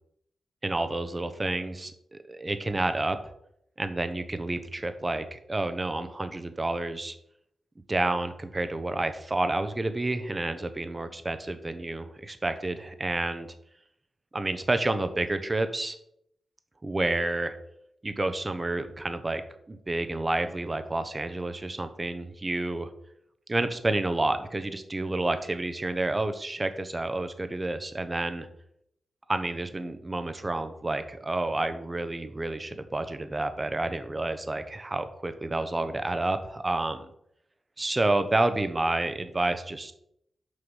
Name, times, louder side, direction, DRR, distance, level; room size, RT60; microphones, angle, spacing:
voice 1, 0.6-3.2 3.8-7.2 7.9-13.5 14.3-16.0 16.8-17.5 18.0-19.4 19.7-22.9 23.5-28.5 29.3-37.0 37.8-39.9, right 2 dB, 20° right, 10 dB, 0.8 m, -29 dB
6.4 x 5.6 x 6.3 m, 0.73 s
wide cardioid pair, 130°, 0 cm